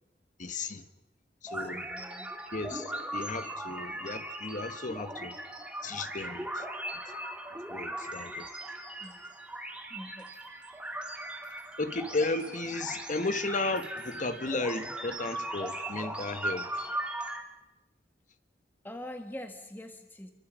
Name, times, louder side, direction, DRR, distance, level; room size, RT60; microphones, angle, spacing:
voice 1, 0.4-0.9 1.4-1.9 2.5-5.4 5.8-6.7 7.7-8.5 11.8-17.0, left 3 dB, 45° left, 1.2 m, -34 dB
sound 1, 1.5-17.4, right 1 dB, 5° right, 2.5 m, -38 dB
voice 2, 1.6-2.3 9.0-9.2 9.9-10.3 18.8-20.3, left 1 dB, 10° left, 1.4 m, -44 dB
27.0 x 24.5 x 6.2 m
head